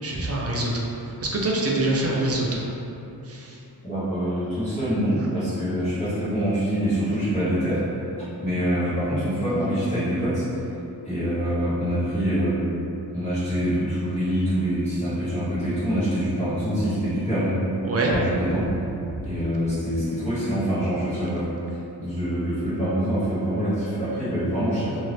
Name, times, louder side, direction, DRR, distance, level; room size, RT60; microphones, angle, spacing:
voice 1, 0.0-0.9 1.2-2.6 3.2-3.6 17.8-18.2 19.1-19.2, right 2 dB, 35° right, -3 dB, 0.4 m, -25 dB
voice 2, 3.8-7.8 8.4-10.4 11.0-12.6 13.1-17.6 18.1-18.7 19.2-21.4 22.0-25.0, equal, 15° left, -15 dB, 0.9 m, -25 dB
2.7 x 2.6 x 3.2 m, 2.9 s
wide cardioid pair, 140°, 42 cm